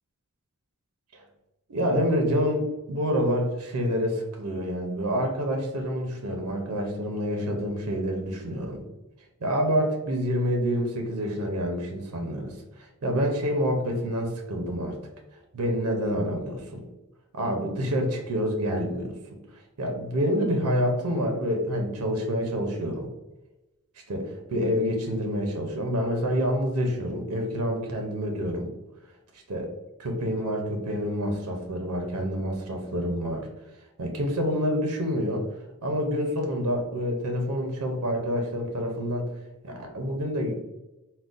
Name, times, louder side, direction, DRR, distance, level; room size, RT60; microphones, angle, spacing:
voice 1, 1.7-8.8 9.4-15.0 15.5-16.8 17.3-19.4 19.8-23.1 24.1-28.7 29.5-29.7 30.0-33.5 34.0-35.4 35.8-39.2 39.6-40.6, equal, 85° right, 2 dB, 0.6 m, -27 dB
3.7 x 2.1 x 2.4 m, 1.0 s
head